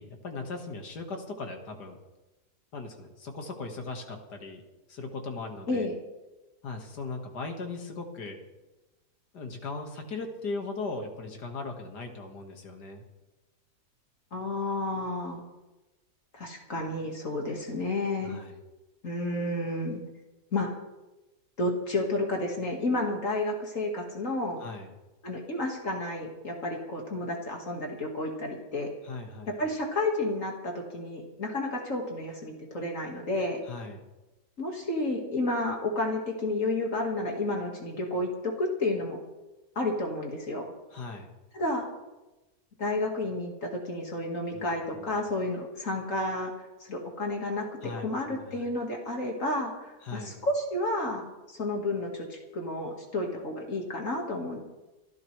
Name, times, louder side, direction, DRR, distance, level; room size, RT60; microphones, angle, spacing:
voice 1, 0.0-2.0 2.7-4.6 4.9-5.9 6.6-8.4 9.3-13.0 18.2-18.5 24.6-24.9 29.0-29.5 33.6-34.0 40.9-41.3 44.5-44.7 45.0-45.2 47.8-48.6 50.0-50.4, left 3 dB, 90° left, 4 dB, 2.4 m, -38 dB
voice 2, 14.3-15.4 16.3-18.4 19.0-20.0 20.5-20.7 21.6-24.6 25.2-28.9 29.6-33.6 34.6-39.2 39.8-40.7 41.5-41.9 42.8-47.7 48.0-54.6, left 2 dB, 55° left, 1 dB, 2.3 m, -31 dB
25.5 x 12.0 x 3.3 m, 1.1 s
omnidirectional pair, 1.7 m